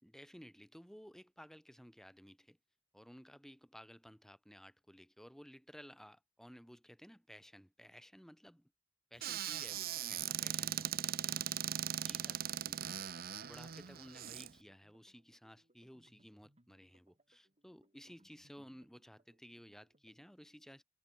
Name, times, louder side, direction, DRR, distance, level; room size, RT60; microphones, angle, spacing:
voice 1, 0.0-2.6 2.9-8.7 9.1-11.8 12.0-13.1 13.5-20.8, equal, ahead, 2.8 m, -56 dB
Squeak / Cupboard open or close, 9.2-14.5, right 10 dB, 50° right, 0.8 m, -39 dB
sound 1, 13.6-20.2, right 1 dB, 30° right, 3.9 m, -72 dB
open air
head